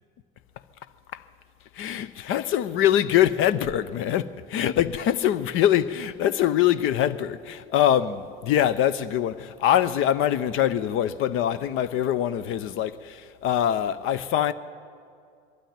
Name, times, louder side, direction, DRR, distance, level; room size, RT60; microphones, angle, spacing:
voice 1, 1.7-14.5, left 11 dB, 40° left, 0.7 m, -23 dB
23.0 x 13.0 x 9.0 m
figure-of-eight pair, 70°, 32 cm